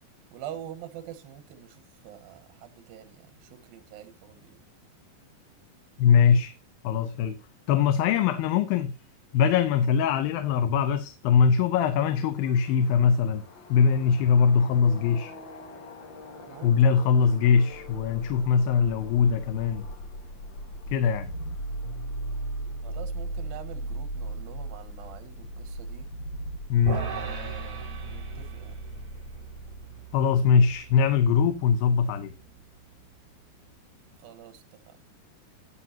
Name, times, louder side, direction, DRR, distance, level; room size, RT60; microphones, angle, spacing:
voice 1, 0.0-4.6 16.5-17.1 22.8-26.1 26.9-28.8 29.6-29.7 34.2-35.0, right 10 dB, 80° right, 3.1 m, -45 dB
voice 2, 6.0-6.6 6.8-7.4 7.7-8.9 9.3-13.4 13.7-15.3 16.6-19.9 20.9-21.3 26.7-27.0 30.1-32.3, left 6 dB, 80° left, 2.7 m, -22 dB
sound 1, 12.0-30.7, left 3 dB, 40° left, 1.9 m, -51 dB
sound 2, 19.2-29.9, right 1 dB, 65° left, 1.6 m, -37 dB
sound 3, 26.9-33.2, right 6 dB, 50° right, 4.1 m, -39 dB
17.0 x 6.5 x 2.8 m
omnidirectional pair, 4.1 m